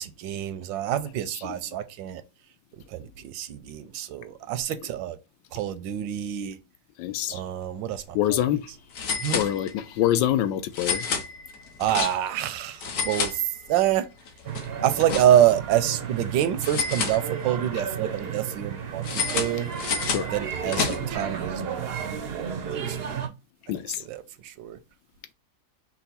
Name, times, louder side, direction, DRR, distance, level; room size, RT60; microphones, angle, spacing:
voice 1, 0.0-2.2 2.9-5.2 5.5-6.6 7.3-8.2 9.2-9.4 11.8-14.1 14.8-19.7 20.3-23.1 24.1-24.8, right 11 dB, 85° right, 1.3 m, -26 dB
voice 2, 7.0-7.4 8.1-8.7 9.0-11.1 20.1-20.3 20.7-21.1 23.7-24.0, left 12 dB, 85° left, 1.3 m, -26 dB
sound 1, 7.8-8.0 8.2-8.3 8.9-10.0 10.7-12.4 12.7-13.9 14.3-15.6 16.6-17.7 19.0-21.3, left 5 dB, 60° left, 1.2 m, -30 dB
sound 2, 14.4-23.3, right 7 dB, 70° right, 0.5 m, -33 dB
5.6 x 2.1 x 4.1 m
omnidirectional pair, 2.0 m